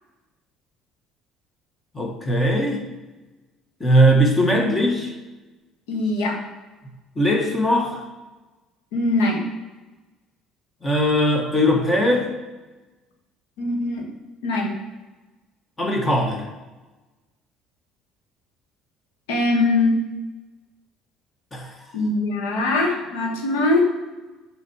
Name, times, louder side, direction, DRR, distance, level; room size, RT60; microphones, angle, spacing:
voice 1, 1.9-2.9 3.8-5.1 7.1-8.0 10.8-12.3 15.8-16.5 21.5-21.7, equal, 20° left, 1 dB, 1.6 m, -19 dB
voice 2, 5.9-6.4 8.9-9.4 13.6-14.1 14.4-14.8 19.3-20.0 21.9-23.8, left 2 dB, 90° left, 0 dB, 1.5 m, -22 dB
8.2 x 3.4 x 4.6 m, 1.2 s
supercardioid pair, 85°, 0 cm